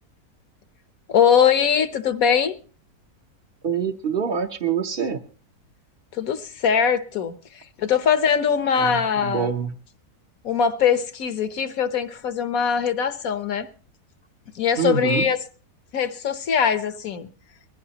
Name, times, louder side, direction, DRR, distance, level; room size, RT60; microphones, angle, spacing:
voice 1, 1.1-2.6 6.1-9.5 10.4-13.7 14.5-15.4 15.9-17.3, left 7 dB, 65° left, 1.4 m, -22 dB
voice 2, 3.6-5.2 8.8-9.7 14.8-15.3, right 7 dB, 45° right, 0.9 m, -25 dB
21.5 x 15.0 x 2.9 m
omnidirectional pair, 1.7 m